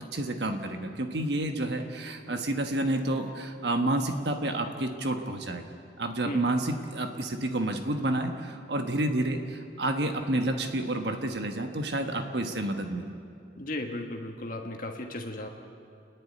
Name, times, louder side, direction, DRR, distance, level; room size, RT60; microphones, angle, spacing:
voice 1, 0.0-5.6 6.0-13.1, right 1 dB, 70° right, 5 dB, 1.4 m, -29 dB
voice 2, 13.6-15.5, left 1 dB, 50° left, 3 dB, 1.4 m, -35 dB
29.5 x 10.5 x 9.5 m, 2.5 s
head